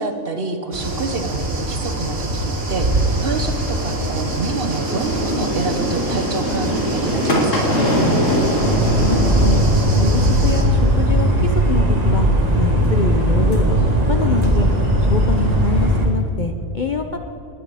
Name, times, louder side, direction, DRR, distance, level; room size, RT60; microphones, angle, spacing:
voice 1, 0.0-2.9 3.2-7.8, right 3 dB, 45° right, 6 dB, 1.2 m, -27 dB
sound 1, 0.7-10.6, right 1 dB, 85° right, 2.5 m, -25 dB
sound 2, 2.6-16.1, equal, 65° left, 2.7 m, -25 dB
sound 3, 8.6-16.1, right 1 dB, 30° right, 1.4 m, -17 dB
voice 2, 8.9-9.6 10.0-12.3 12.6-13.6 14.1-14.7 15.0-17.2, left 4 dB, 45° left, 5 dB, 0.6 m, -25 dB
20.5 x 9.0 x 4.9 m, 3.0 s
omnidirectional pair, 1.4 m